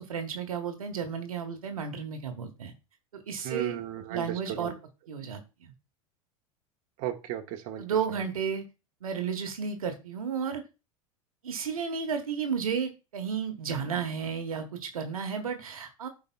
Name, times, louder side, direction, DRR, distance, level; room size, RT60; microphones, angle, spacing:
voice 1, 0.0-2.7 3.1-3.8 4.1-4.7 5.1-5.7 7.8-8.6 9.0-10.6 11.4-16.1, right 6 dB, 85° right, 6 dB, 1.2 m, -33 dB
voice 2, 3.4-4.7 7.0-7.8, right 11 dB, 55° right, 4 dB, 1.3 m, -35 dB
14.0 x 4.7 x 2.3 m, 0.29 s
hypercardioid pair, 90°, 18 cm